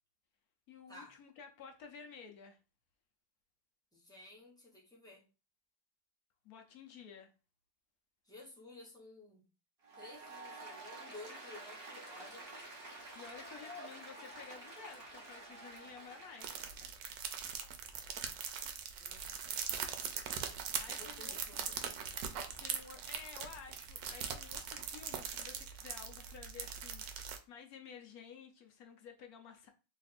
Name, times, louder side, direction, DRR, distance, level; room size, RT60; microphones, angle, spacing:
voice 1, 0.7-2.6 6.4-7.3 13.1-16.6 20.8-21.6 22.6-29.7, left 6 dB, 65° left, 1.0 m, -53 dB
voice 2, 3.9-5.2 8.2-9.5 9.9-12.5 19.0-19.3 20.9-21.9, left 2 dB, 5° left, 0.7 m, -54 dB
Applause, 9.8-16.8, right 2 dB, 40° right, 1.1 m, -50 dB
sound 1, 16.4-27.4, right 7 dB, 85° right, 1.3 m, -41 dB
3.3 x 2.4 x 4.1 m
omnidirectional pair, 1.9 m